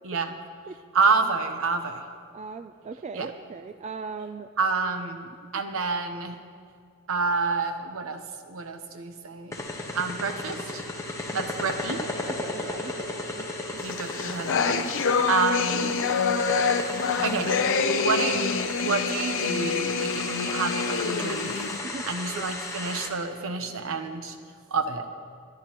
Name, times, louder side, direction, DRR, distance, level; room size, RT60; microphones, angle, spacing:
voice 1, 0.9-2.0 3.1-3.3 4.6-6.4 7.1-8.2 8.5-9.6 9.9-10.8 11.3-12.0 13.8-14.8 15.3-15.9 17.2-17.6 17.9-21.7 22.0-24.4 24.7-25.1, right 4 dB, 65° right, 7 dB, 0.9 m, -28 dB
voice 2, 2.3-4.5 11.4-11.5 12.3-13.5 13.9-14.0 15.0-15.3 21.9-22.0 22.3-22.5, right 4 dB, 30° right, 9 dB, 0.3 m, -39 dB
sound 1, 9.5-23.1, left 2 dB, 15° left, 1.2 m, -35 dB
sound 2, 13.9-21.8, left 5 dB, 60° left, 0.7 m, -26 dB
21.5 x 11.0 x 3.0 m, 2.2 s
head